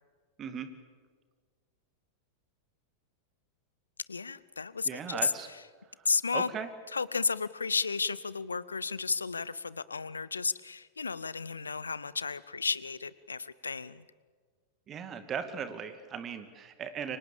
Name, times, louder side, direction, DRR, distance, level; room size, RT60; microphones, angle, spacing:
voice 1, 0.4-0.7 4.9-5.5 6.3-6.7 14.9-17.2, right 7 dB, 30° right, 9 dB, 2.4 m, -37 dB
voice 2, 4.1-5.6 6.0-6.5 6.9-14.0, left 4 dB, 75° left, 19 dB, 0.8 m, -33 dB
29.5 x 24.5 x 7.2 m, 1.5 s
figure-of-eight pair, 90°, 0 cm